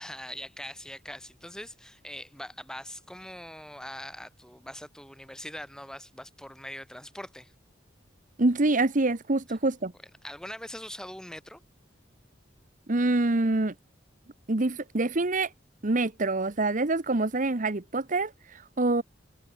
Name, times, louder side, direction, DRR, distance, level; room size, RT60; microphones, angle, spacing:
voice 1, 0.0-7.5 10.2-11.6, left 1 dB, 5° left, 4.7 m, -42 dB
voice 2, 8.4-9.9 12.9-13.7 14.5-15.5 15.8-19.0, right 2 dB, 45° right, 1.1 m, -26 dB
head